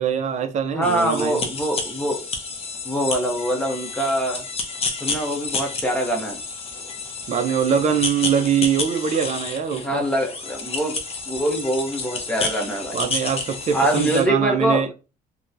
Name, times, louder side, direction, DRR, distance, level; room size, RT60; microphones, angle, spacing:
voice 1, 0.0-1.5 7.3-10.1 12.9-14.9, right 8 dB, 45° right, 0.5 m, -23 dB
voice 2, 0.7-2.2 2.8-4.4 5.0-6.4 9.8-10.9 11.3-13.0 13.7-14.9, right 1 dB, 5° left, 0.9 m, -24 dB
sound 1, 0.8-14.3, left 4 dB, 35° left, 0.6 m, -30 dB
2.9 x 2.2 x 2.5 m
cardioid pair, 110°, 17 cm